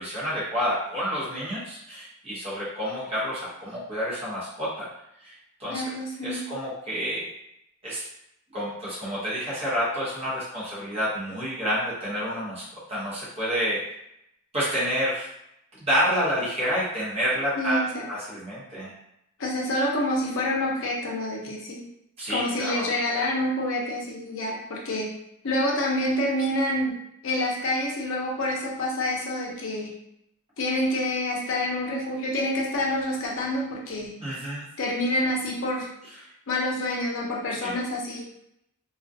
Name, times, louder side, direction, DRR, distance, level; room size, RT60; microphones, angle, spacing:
voice 1, 0.0-4.9 5.2-5.3 5.6-5.8 6.2-7.3 7.8-8.0 8.5-12.6 12.9-13.8 14.5-15.3 15.8-17.8 18.1-18.9 22.2-22.9 34.2-34.7 37.6-37.7, equal, 25° right, -9 dB, 0.8 m, -28 dB
voice 2, 5.7-6.5 17.6-18.0 19.4-21.8 22.3-25.1 25.4-27.0 27.2-29.9 30.6-34.1 34.8-35.9 36.5-38.2, left 1 dB, 60° left, -2 dB, 0.6 m, -27 dB
2.3 x 2.2 x 2.5 m, 0.79 s
head